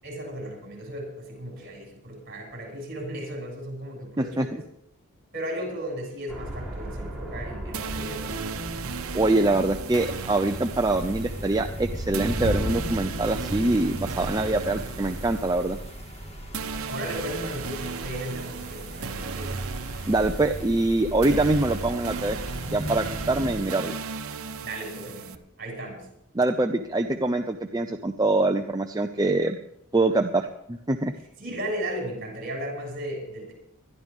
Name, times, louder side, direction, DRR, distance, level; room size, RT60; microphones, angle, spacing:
voice 1, 0.0-4.6 5.3-8.5 16.9-19.6 24.6-26.1 31.4-33.5, right 1 dB, 45° right, -1 dB, 7.0 m, -35 dB
sound 1, 6.3-12.5, right 1 dB, ahead, 3.8 m, -39 dB
sound 2, 7.7-25.3, right 4 dB, 75° right, 1.0 m, -36 dB
voice 2, 9.1-15.8 20.1-22.4 22.7-24.0 26.3-29.6 29.9-31.1, right 2 dB, 15° right, 4 dB, 0.5 m, -24 dB
sound 3, 10.7-23.6, right 1 dB, 30° left, 1.9 m, -35 dB
21.5 x 12.0 x 3.7 m, 0.75 s
head